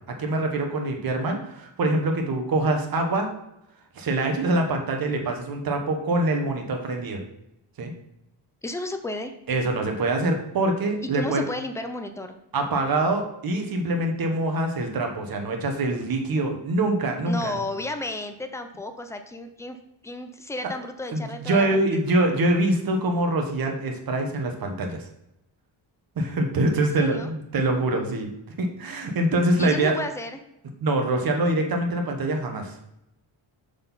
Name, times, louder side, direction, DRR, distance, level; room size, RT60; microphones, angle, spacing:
voice 1, 0.2-3.3 3.9-7.2 7.8-7.9 9.5-11.5 12.5-17.6 21.1-25.0 26.2-28.3 28.6-30.0 30.8-32.7, right 2 dB, 45° right, 3 dB, 1.2 m, -24 dB
voice 2, 8.6-9.3 11.0-12.4 17.3-19.8 20.0-22.0 26.8-27.3 29.6-30.4, left 2 dB, 5° left, 7 dB, 0.3 m, -33 dB
6.6 x 4.0 x 5.5 m, 0.83 s
wide cardioid pair, 170°, 49 cm